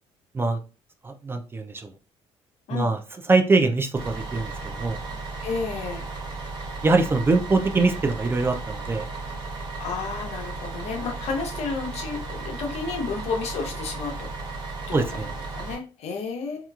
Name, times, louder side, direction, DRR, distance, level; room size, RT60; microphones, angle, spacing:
voice 1, 1.0-1.9 2.7-3.0 3.3-5.0 6.8-9.1 14.9-15.3, right 3 dB, 20° right, 5 dB, 0.3 m, -23 dB
Bus, 4.0-15.7, right 3 dB, 45° right, 1.4 m, -35 dB
voice 2, 5.4-6.1 9.8-14.6 14.9-16.7, left 4 dB, 65° left, 3 dB, 0.7 m, -32 dB
2.9 x 2.3 x 2.3 m, 0.33 s
cardioid pair, 120°, 12 cm